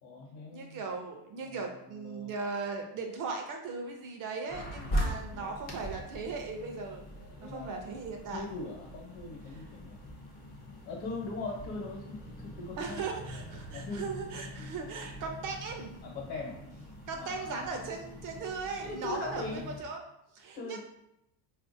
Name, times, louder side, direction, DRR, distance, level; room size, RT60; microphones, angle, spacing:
voice 1, 0.0-0.8 1.4-1.6 1.9-2.3 4.8-5.9 7.4-7.8 8.3-10.0 10.9-13.0 13.7-14.1 16.0-16.6 17.1-17.8 18.8-19.6 20.5-20.8, left 3 dB, 55° left, -2 dB, 1.0 m, -41 dB
voice 2, 0.5-7.0 7.4-8.4 12.8-15.9 17.1-20.0 20.3-20.8, right 4 dB, 40° right, 3 dB, 0.5 m, -38 dB
sound 1, 4.5-19.8, equal, 20° left, 0.4 m, -41 dB
3.6 x 2.5 x 2.5 m, 0.83 s
cardioid pair, 125°, 49 cm